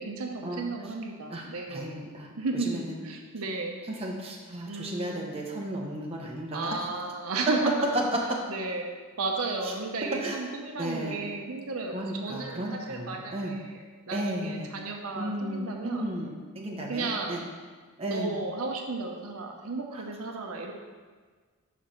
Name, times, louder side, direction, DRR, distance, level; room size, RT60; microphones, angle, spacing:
voice 1, 0.0-2.0 2.4-3.8 4.7-5.3 6.5-8.0 8.5-8.9 9.2-16.1 16.9-17.5 18.0-20.7, right 3 dB, 75° right, 2 dB, 0.7 m, -34 dB
voice 2, 1.3-2.3 2.6-2.9 3.9-6.8 9.6-9.7 10.2-10.4 10.8-11.2 11.9-13.6 14.1-14.7 15.2-17.4 18.0-18.4 19.9-20.0, right 1 dB, 25° right, -1 dB, 0.8 m, -34 dB
5.0 x 4.6 x 5.8 m, 1.5 s
head